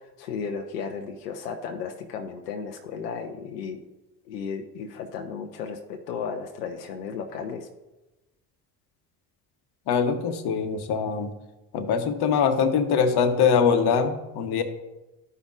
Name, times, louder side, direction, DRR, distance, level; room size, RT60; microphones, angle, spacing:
voice 1, 0.2-3.8 4.3-7.7, left 6 dB, 85° left, 4 dB, 0.7 m, -34 dB
voice 2, 9.9-11.3 11.7-14.6, left 6 dB, 55° left, 8 dB, 1.1 m, -23 dB
13.0 x 5.4 x 2.4 m, 1.0 s
hypercardioid pair, 60°, 47 cm